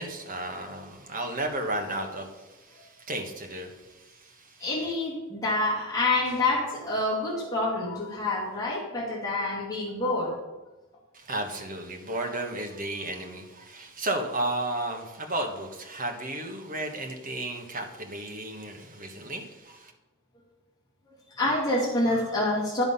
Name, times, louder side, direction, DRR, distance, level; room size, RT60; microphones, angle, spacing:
voice 1, 0.0-4.6 11.1-19.9, right 1 dB, 40° right, 3 dB, 1.3 m, -33 dB
voice 2, 4.6-10.3 21.4-22.8, left 2 dB, 15° left, -8 dB, 2.5 m, -27 dB
10.5 x 5.7 x 5.5 m, 1.1 s
head